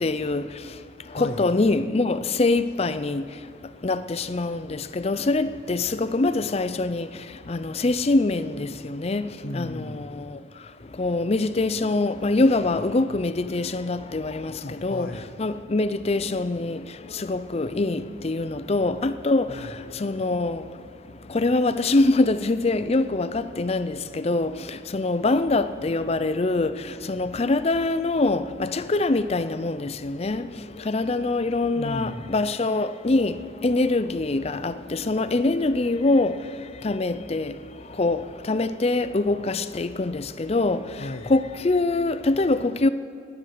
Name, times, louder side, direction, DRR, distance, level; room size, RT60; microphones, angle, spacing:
voice 1, 0.0-0.4 1.2-3.2 3.8-4.6 5.0-7.1 7.5-9.3 9.5-9.8 11.0-14.5 14.8-15.1 15.4-16.8 17.3-19.5 20.0-20.6 21.3-23.3 23.6-24.0 24.2-24.5 24.9-26.7 27.1-30.4 30.9-33.3 33.6-36.3 36.8-37.5 38.0-38.2 38.5-40.8 41.3-42.9, left 2 dB, 30° left, 0.5 m, -23 dB
voice 2, 1.1-1.6 9.4-10.3 14.6-15.4 19.5-19.7 31.7-32.3 41.0-41.3, left 2 dB, 50° left, 0.9 m, -35 dB
17.0 x 10.5 x 6.6 m
head